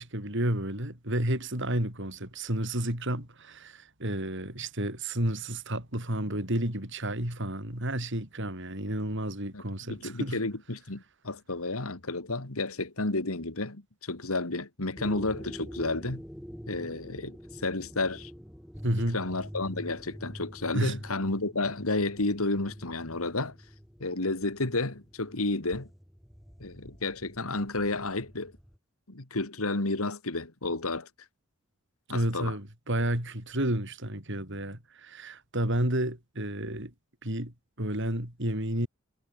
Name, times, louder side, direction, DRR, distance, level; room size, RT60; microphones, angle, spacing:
voice 1, 0.0-10.4 18.8-19.2 20.7-21.0 32.1-36.9 37.2-38.9, right 1 dB, 60° right, 7.1 m, -31 dB
voice 2, 9.9-16.2 16.7-18.3 19.1-23.6 24.0-25.9 26.6-28.5 29.1-31.1 32.1-32.6, left 2 dB, 85° left, 2.4 m, -31 dB
sound 1, 15.0-28.8, equal, ahead, 5.0 m, -46 dB
head